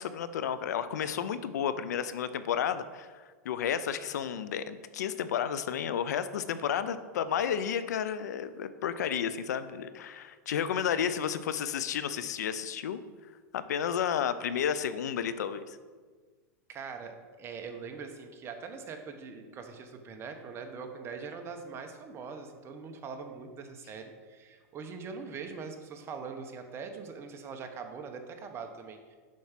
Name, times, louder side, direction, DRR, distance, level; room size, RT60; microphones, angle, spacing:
voice 1, 0.0-13.0 13.5-15.8, left 8 dB, 85° left, 13 dB, 0.5 m, -32 dB
voice 2, 16.7-29.2, right 5 dB, 30° right, 5 dB, 0.9 m, -42 dB
7.3 x 4.6 x 5.8 m, 1.5 s
supercardioid pair, 130°, 9 cm